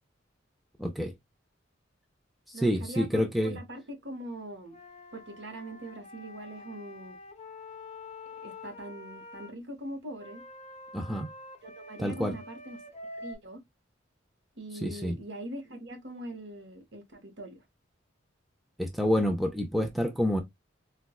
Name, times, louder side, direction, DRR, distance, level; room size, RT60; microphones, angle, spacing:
voice 1, 0.8-1.1 2.6-3.6 10.9-11.3 12.0-12.4 14.8-15.2 18.8-20.4, equal, ahead, 0.4 m, -28 dB
voice 2, 2.5-4.8 5.1-7.2 8.4-10.4 11.6-12.8 13.2-13.6 14.6-17.6, right 1 dB, 60° right, 0.9 m, -42 dB
Wind instrument woodwind instrument, 4.7-9.5 10.2-13.3, left 2 dB, 35° left, 0.7 m, -46 dB
4.1 x 2.2 x 2.3 m
head